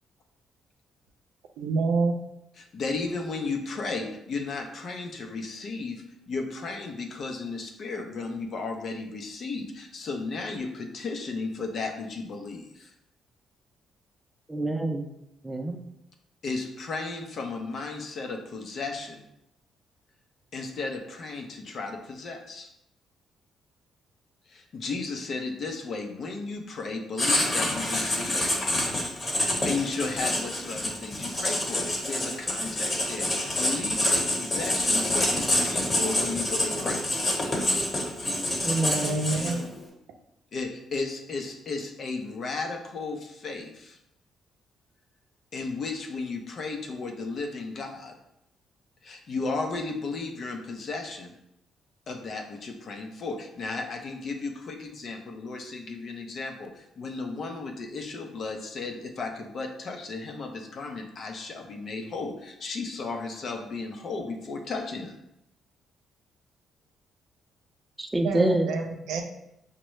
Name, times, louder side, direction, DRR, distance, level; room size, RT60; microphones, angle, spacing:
voice 1, 1.6-2.1 39.0-39.6 68.2-69.2, right 4 dB, 85° right, 3 dB, 0.5 m, -27 dB
voice 2, 2.6-12.9 16.4-19.2 20.5-22.7 24.5-28.4 29.4-37.1 40.5-44.0 45.5-48.2 49.0-51.3 52.1-65.1, left 3 dB, 55° left, 4 dB, 0.6 m, -34 dB
voice 3, 14.5-15.0 15.4-15.8 38.6-39.2 68.0-68.7, right 1 dB, 15° right, 4 dB, 0.5 m, -26 dB
Writing, 27.2-39.8, left 1 dB, 30° left, 1.2 m, -27 dB
5.2 x 2.2 x 3.1 m, 0.82 s
cardioid pair, 90°, 0 cm